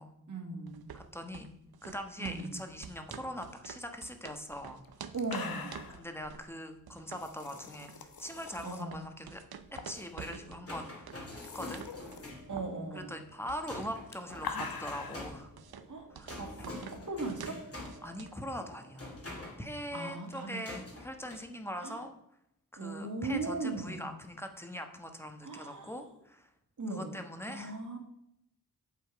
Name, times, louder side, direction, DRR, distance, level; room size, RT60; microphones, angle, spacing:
voice 1, 0.3-0.9 2.2-2.6 5.1-5.8 8.6-9.1 12.5-13.2 15.9-16.1 16.4-17.6 19.9-20.7 21.8-22.0 22.8-24.1 25.4-25.9 26.8-27.1 27.5-28.0, right 3 dB, 55° right, 2 dB, 2.1 m, -38 dB
sound 1, 0.7-18.5, right 7 dB, 85° right, 0.7 m, -50 dB
voice 2, 0.9-1.5 1.8-4.8 5.9-9.4 9.7-11.1 11.5-11.8 12.9-15.5 16.1-16.3 18.0-19.1 19.6-22.1 22.7-26.5 26.9-27.8, equal, 5° left, 6 dB, 1.2 m, -42 dB
sound 2, 4.4-4.5 4.8-4.9 5.1-6.0 7.1-8.8 9.7-10.1 10.4-10.5 11.1-12.3 13.7-15.3 16.4-16.7, left 5 dB, 80° left, 1.0 m, -43 dB
sound 3, 9.7-19.6 20.7-21.4, left 2 dB, 40° left, 2.7 m, -47 dB
8.4 x 7.2 x 4.7 m, 0.79 s
wide cardioid pair, 100°, 36 cm